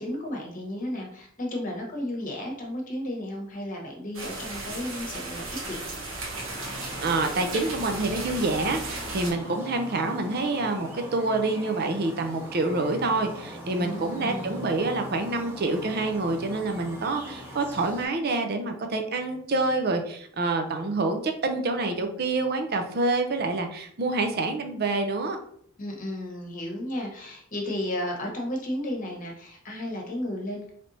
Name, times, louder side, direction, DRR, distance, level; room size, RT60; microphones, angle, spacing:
voice 1, 0.0-5.9 13.8-14.6 25.8-30.7, left 1 dB, 40° left, 0 dB, 1.0 m, -33 dB
sound 1, 4.1-9.3, right 2 dB, 75° right, 1.1 m, -35 dB
sound 2, 6.3-18.1, equal, 10° right, 1.0 m, -41 dB
voice 2, 7.0-25.4, right 2 dB, 50° right, 5 dB, 0.6 m, -27 dB
4.3 x 3.3 x 2.7 m, 0.65 s
head